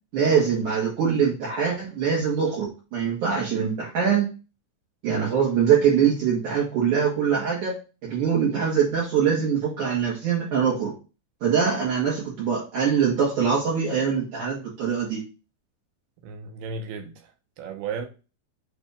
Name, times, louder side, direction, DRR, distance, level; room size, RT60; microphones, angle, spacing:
voice 1, 0.1-4.3 5.0-10.9 11.4-15.2, right 7 dB, 55° right, 3.0 m, -23 dB
voice 2, 16.2-17.3 17.6-18.1, right 5 dB, 80° right, 2.5 m, -34 dB
8.4 x 3.3 x 5.0 m
omnidirectional pair, 4.9 m